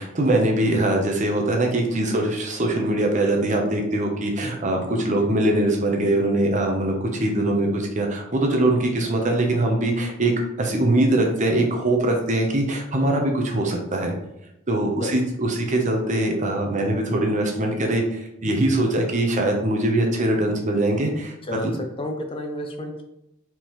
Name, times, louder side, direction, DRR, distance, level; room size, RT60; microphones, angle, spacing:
voice 1, 0.0-10.3 10.6-14.1 14.7-21.3 21.6-21.7, right 1 dB, 35° right, 2 dB, 0.8 m, -22 dB
voice 2, 5.0-5.3 15.0-15.1 21.5-23.0, left 1 dB, 25° left, 3 dB, 0.5 m, -30 dB
4.4 x 3.7 x 3.1 m, 0.86 s
head